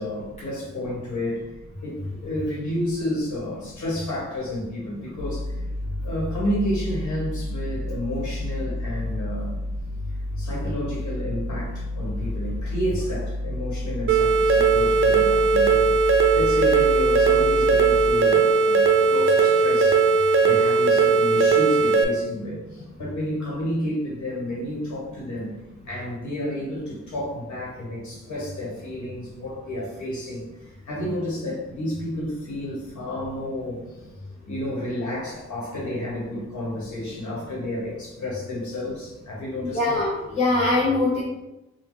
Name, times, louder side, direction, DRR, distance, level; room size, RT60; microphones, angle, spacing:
voice 1, 0.0-1.5 1.8-5.5 6.0-9.6 10.4-25.5 25.8-40.0, left 1 dB, 80° left, -5 dB, 1.3 m, -31 dB
sound 1, 5.2-18.1, left 1 dB, 60° left, 0.7 m, -31 dB
sound 2, 14.1-22.0, right 4 dB, 45° right, 0.5 m, -18 dB
voice 2, 39.6-41.2, left 2 dB, 20° left, -8 dB, 0.9 m, -22 dB
3.1 x 2.3 x 3.8 m, 0.97 s
cardioid pair, 75°, 29 cm